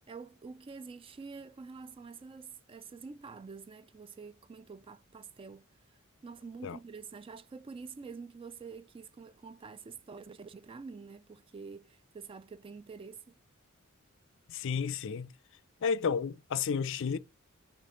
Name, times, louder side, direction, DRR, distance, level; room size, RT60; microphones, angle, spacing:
voice 1, 0.0-5.7 6.2-13.4, right 4 dB, 25° right, 0.3 m, -47 dB
voice 2, 14.5-15.3 15.8-17.2, left 6 dB, 60° left, 0.4 m, -32 dB
5.9 x 3.6 x 5.0 m
head